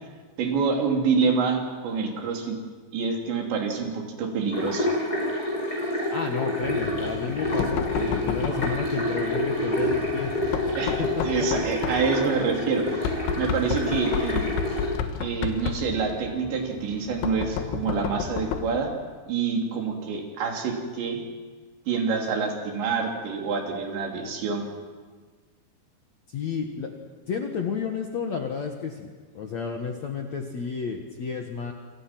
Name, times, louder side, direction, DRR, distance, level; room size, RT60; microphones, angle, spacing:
voice 1, 0.4-2.6 2.9-4.9 7.9-8.2 10.8-14.5 15.2-18.9 19.3-21.2 21.9-24.7, right 5 dB, 75° right, 1 dB, 5.4 m, -27 dB
sound 1, 4.5-14.9, left 1 dB, 20° left, 8.5 m, -28 dB
voice 2, 6.1-10.3 11.0-11.5 26.3-26.9 27.3-29.1 29.3-31.7, left 6 dB, 60° left, 3 dB, 2.0 m, -31 dB
Knock, 6.6-18.8, left 8 dB, 90° left, 3.8 m, -32 dB
27.5 x 26.5 x 6.0 m, 1.4 s
omnidirectional pair, 5.2 m